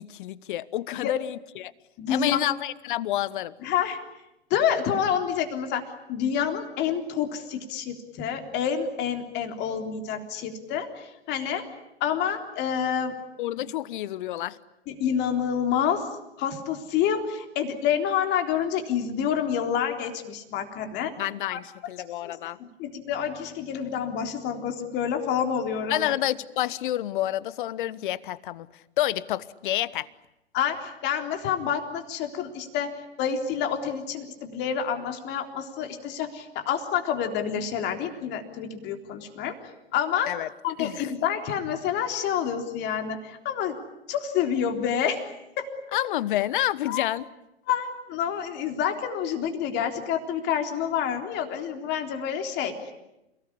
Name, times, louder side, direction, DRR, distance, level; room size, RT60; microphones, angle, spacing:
voice 1, 0.0-1.7 2.1-3.5 13.4-14.6 21.2-22.6 25.9-30.1 40.3-40.5 40.8-41.1 45.9-47.3, left 14 dB, 50° left, 19 dB, 1.1 m, -29 dB
voice 2, 2.0-2.5 3.6-4.0 4.5-5.8 6.1-11.6 12.0-13.2 14.9-16.1 16.4-21.1 21.5-21.6 22.2-22.5 22.8-26.1 30.5-32.9 33.2-39.6 39.9-40.3 40.6-43.8 44.1-45.3 45.6-45.7 46.9-47.1 47.7-52.9, left 8 dB, 30° left, 5 dB, 3.7 m, -28 dB
29.0 x 18.5 x 10.0 m, 0.90 s
figure-of-eight pair, 115°, 32 cm